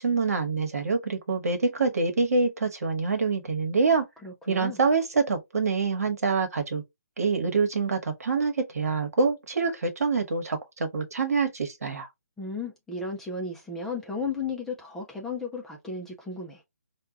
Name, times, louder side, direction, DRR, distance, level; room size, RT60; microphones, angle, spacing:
voice 1, 0.0-4.0 4.5-6.8 7.2-12.1, right 4 dB, 65° right, 1.1 m, -26 dB
voice 2, 4.2-4.8 12.4-16.6, left 4 dB, 5° left, 0.4 m, -34 dB
4.5 x 2.3 x 2.4 m
figure-of-eight pair, 145°, 9 cm